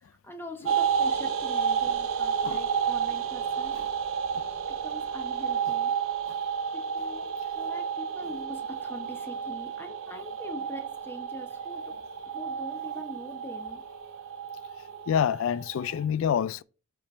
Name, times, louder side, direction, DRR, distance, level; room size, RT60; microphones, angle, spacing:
voice 1, 0.0-3.8 4.8-5.9 6.7-7.3 7.5-11.8 12.3-13.8, left 1 dB, 10° left, 0.9 m, -43 dB
sound 1, 0.6-16.0, right 7 dB, 75° right, 0.7 m, -31 dB
voice 2, 15.1-16.6, left 8 dB, 70° left, 0.3 m, -28 dB
5.5 x 5.2 x 4.3 m
head